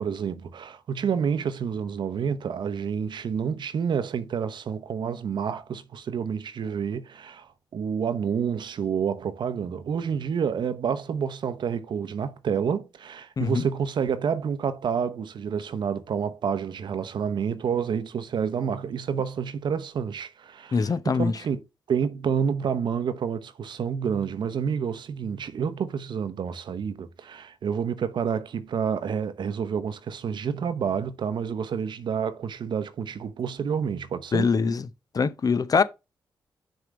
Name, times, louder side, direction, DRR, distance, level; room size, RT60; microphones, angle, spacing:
voice 1, 0.0-21.6 21.9-34.5, right 7 dB, 60° right, 0.8 m, -29 dB
voice 2, 20.7-21.3 34.3-34.9 35.1-35.8, left 5 dB, 45° left, 0.7 m, -23 dB
6.4 x 3.5 x 5.0 m
hypercardioid pair, 45°, 9 cm